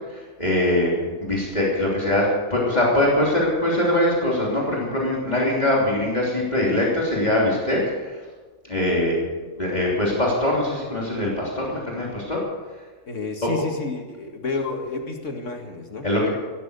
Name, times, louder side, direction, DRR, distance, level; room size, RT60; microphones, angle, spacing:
voice 1, 0.1-0.9 1.2-8.2 8.7-9.1 9.6-12.4 13.4-13.5 16.0-16.3, left 1 dB, 30° left, -4 dB, 3.3 m, -22 dB
voice 2, 13.1-16.1, left 3 dB, 60° left, 4 dB, 2.2 m, -30 dB
16.0 x 13.0 x 6.9 m, 1.4 s
omnidirectional pair, 1.5 m